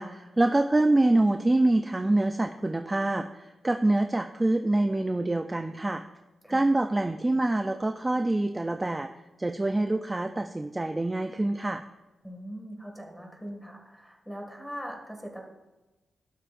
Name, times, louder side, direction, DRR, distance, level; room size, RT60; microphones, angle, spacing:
voice 1, 0.0-6.0 6.5-9.1 9.4-11.8, right 2 dB, 15° right, 6 dB, 0.4 m, -25 dB
voice 2, 12.2-15.4, equal, 5° left, 1 dB, 2.0 m, -41 dB
12.0 x 11.0 x 2.6 m, 1.1 s
wide cardioid pair, 140°, 0 cm